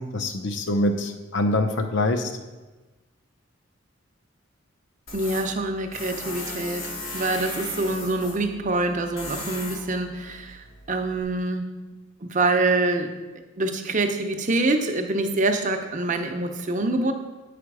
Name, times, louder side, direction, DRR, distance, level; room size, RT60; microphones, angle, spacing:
voice 1, 0.0-2.3, left 1 dB, 60° left, 7 dB, 0.7 m, -24 dB
Tools, 5.1-11.2, left 2 dB, 85° left, 1.4 m, -37 dB
voice 2, 5.1-11.7 12.2-13.1 13.6-17.1, right 2 dB, 40° right, 5 dB, 0.7 m, -25 dB
7.8 x 5.0 x 4.7 m, 1.2 s
head